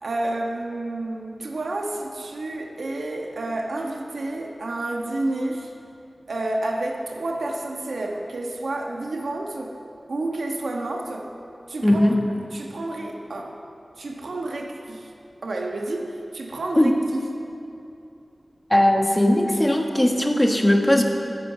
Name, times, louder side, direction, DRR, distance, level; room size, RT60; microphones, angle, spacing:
voice 1, 0.0-5.7 6.3-9.8 10.1-11.3 11.7-12.0 12.5-13.6 14.0-15.1 15.4-17.2, right 2 dB, 90° right, 1 dB, 1.2 m, -30 dB
voice 2, 11.8-12.2 16.8-16.9 18.7-21.0, left 1 dB, 15° left, 3 dB, 1.4 m, -18 dB
14.0 x 10.5 x 6.8 m, 2.7 s
wide cardioid pair, 85°, 0 cm